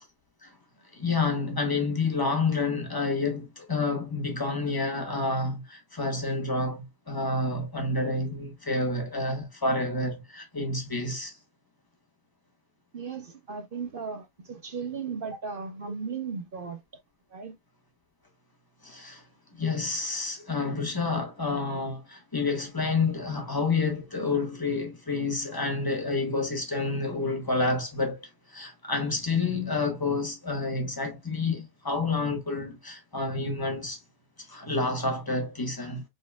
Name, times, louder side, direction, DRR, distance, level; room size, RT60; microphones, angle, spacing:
voice 1, 0.9-11.4 18.8-19.2 19.5-28.2 28.5-34.0 34.4-36.0, left 3 dB, 15° left, 1.3 m, -29 dB
voice 2, 12.9-16.8 17.3-17.6, right 5 dB, 55° right, 0.6 m, -36 dB
5.2 x 4.0 x 2.3 m
omnidirectional pair, 1.8 m